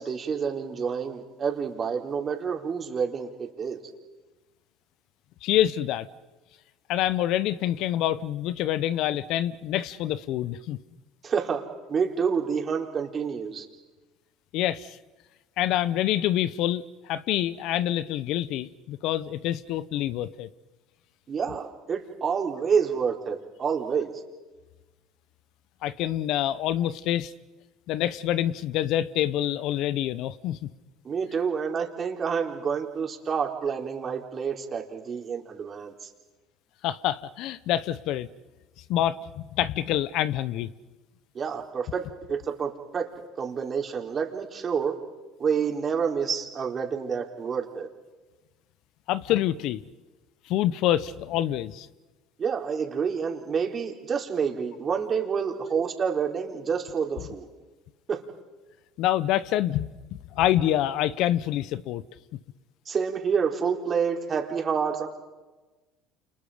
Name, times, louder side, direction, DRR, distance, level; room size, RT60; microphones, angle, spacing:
voice 1, 0.0-3.8 11.2-11.6 11.9-13.7 21.3-24.1 31.0-35.9 41.3-43.1 43.4-45.0 45.4-47.9 52.4-57.5 58.1-58.2 62.9-65.1, right 6 dB, 35° right, 4.2 m, -28 dB
voice 2, 5.4-6.1 6.9-10.8 14.5-15.0 15.6-20.5 25.8-27.3 27.9-30.7 36.8-38.3 38.9-40.7 49.1-49.8 50.5-51.9 59.0-59.9 60.3-62.0, left 12 dB, 65° left, 0.9 m, -26 dB
29.0 x 29.0 x 5.1 m
supercardioid pair, 85°, 0 cm